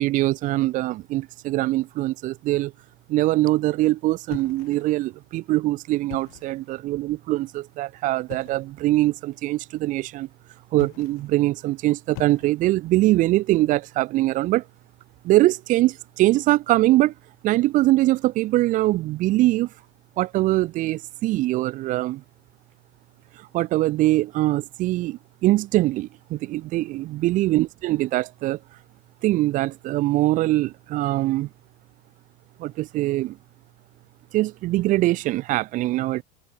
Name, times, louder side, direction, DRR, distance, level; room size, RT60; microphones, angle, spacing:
voice 1, 0.0-2.7 3.1-10.3 10.7-14.6 15.2-17.1 17.4-19.7 20.2-22.2 23.4-28.6 29.2-31.5 32.6-33.4 34.3-36.2, right 17 dB, 40° right, 0.6 m, -22 dB
sound 1, 4.3-5.1 6.0-6.7 8.3-8.7 10.7-11.4 12.1-12.9, left 32 dB, 65° left, 6.5 m, -42 dB
supercardioid pair, 150°, 21 cm